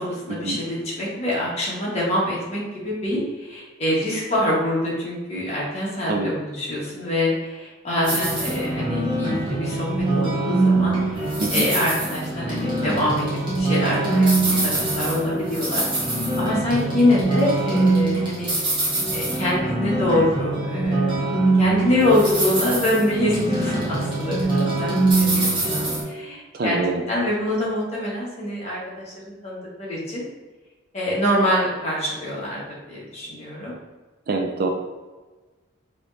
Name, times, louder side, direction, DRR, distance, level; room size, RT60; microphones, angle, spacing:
voice 1, 0.0-11.2 11.5-13.3 13.5-18.5 19.1-21.3 21.6-24.9 25.2-26.8 27.1-30.2 30.9-33.8, left 1 dB, 30° left, -6 dB, 1.3 m, -25 dB
sound 1, 8.0-26.0, right 2 dB, 25° right, 1.1 m, -23 dB
voice 2, 26.5-27.0 34.3-34.7, right 3 dB, 45° right, 3 dB, 0.4 m, -25 dB
4.8 x 3.0 x 2.6 m, 1.3 s
head